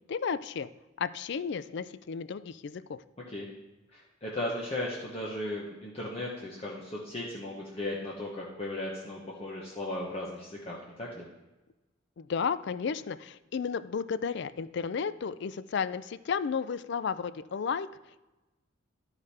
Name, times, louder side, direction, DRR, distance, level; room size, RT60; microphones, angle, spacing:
voice 1, 0.1-0.7 1.0-3.0 12.2-17.9, left 6 dB, 55° left, 15 dB, 0.3 m, -33 dB
voice 2, 3.9-11.3, left 1 dB, 30° left, -4 dB, 1.0 m, -36 dB
11.5 x 4.9 x 4.3 m, 1.1 s
head